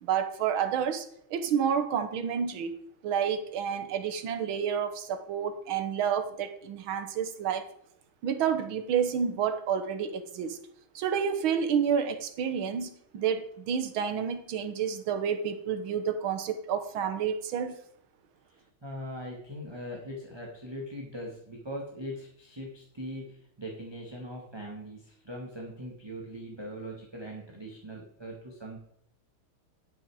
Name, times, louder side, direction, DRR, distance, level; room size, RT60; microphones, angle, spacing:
voice 1, 0.0-2.8 3.0-7.7 8.2-10.6 11.0-17.8, right 7 dB, 75° right, 8 dB, 1.8 m, -29 dB
voice 2, 18.6-28.8, equal, 15° right, -2 dB, 1.3 m, -41 dB
10.5 x 6.3 x 4.8 m, 0.70 s
omnidirectional pair, 2.3 m